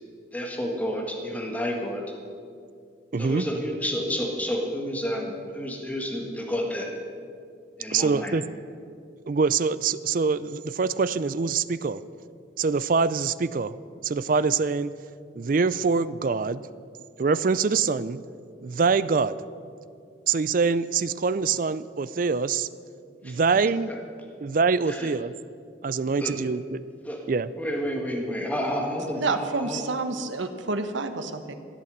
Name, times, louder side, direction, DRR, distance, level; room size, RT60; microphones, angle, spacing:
voice 1, 0.3-2.0 3.2-6.9 7.8-8.4 23.2-24.0 24.8-25.1 26.0-26.4 27.0-27.2 27.6-29.8, equal, 10° left, 0 dB, 1.6 m, -30 dB
voice 2, 3.1-3.5 7.9-8.4 9.3-12.0 12.6-13.8 14.0-14.9 15.3-16.6 17.2-18.2 18.6-19.4 20.3-22.7 23.2-23.9 24.4-25.3 25.8-26.8 27.3-27.5, right 5 dB, 45° right, 16 dB, 0.4 m, -24 dB
voice 3, 29.2-31.5, right 3 dB, 85° right, 8 dB, 1.1 m, -29 dB
14.0 x 8.7 x 7.9 m, 2.3 s
head